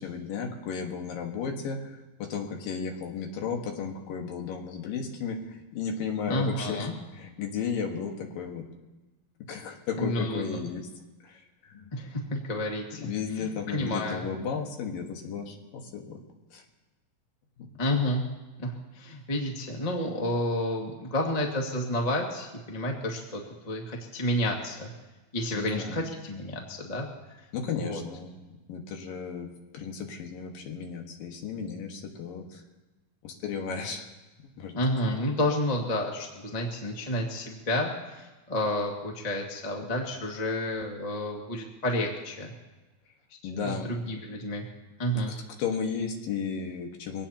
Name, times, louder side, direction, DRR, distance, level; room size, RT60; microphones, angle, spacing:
voice 1, 0.0-8.6 9.5-10.8 11.2-11.9 13.0-16.2 16.5-16.6 17.6-17.7 25.5-26.0 27.5-28.3 28.7-29.5 29.7-32.6 33.2-34.1 34.6-34.7 43.4-43.9 45.3-47.3, left 6 dB, 70° left, 2 dB, 3.1 m, -34 dB
voice 2, 6.3-6.9 10.0-10.6 11.7-13.0 13.4-14.2 17.8-18.2 18.6-24.9 25.3-27.1 27.8-28.0 34.7-42.5 43.5-44.6 45.0-45.3, left 1 dB, 20° left, 0 dB, 1.1 m, -30 dB
24.0 x 17.5 x 2.9 m, 1.1 s
omnidirectional pair, 4.4 m